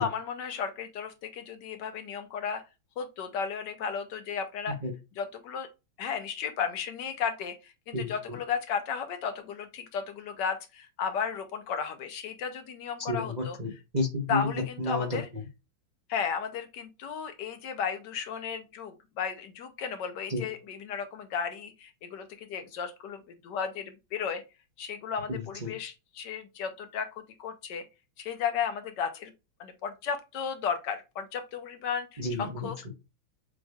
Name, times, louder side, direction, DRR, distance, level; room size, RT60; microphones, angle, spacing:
voice 1, 0.0-2.6 3.0-4.8 5.2-5.7 6.0-13.6 14.3-15.3 16.1-24.4 24.8-27.9 28.2-29.3 29.6-32.8, left 7 dB, 70° left, 8 dB, 1.2 m, -34 dB
voice 2, 7.9-8.4 13.1-15.2 20.3-20.4 25.3-25.7 32.2-32.9, left 2 dB, 35° right, -1 dB, 0.7 m, -32 dB
7.1 x 3.1 x 2.3 m, 0.26 s
omnidirectional pair, 2.1 m